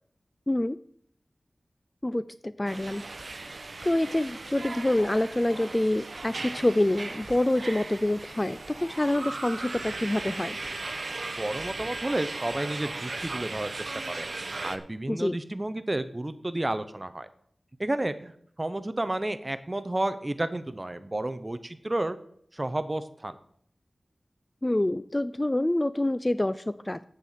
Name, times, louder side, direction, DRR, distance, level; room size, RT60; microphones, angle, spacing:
voice 1, 0.5-0.8 2.0-3.0 3.3-3.5 3.8-10.6 15.1-15.4 24.6-27.0, left 1 dB, 25° left, 15 dB, 0.3 m, -27 dB
sound 1, 2.7-14.8, right 3 dB, 60° right, 0.8 m, -37 dB
voice 2, 11.4-14.3 14.6-17.3 17.8-18.3 18.6-22.2 22.5-23.4, right 1 dB, 30° right, 11 dB, 0.7 m, -31 dB
8.2 x 6.7 x 7.4 m, 0.64 s
wide cardioid pair, 65°, 0 cm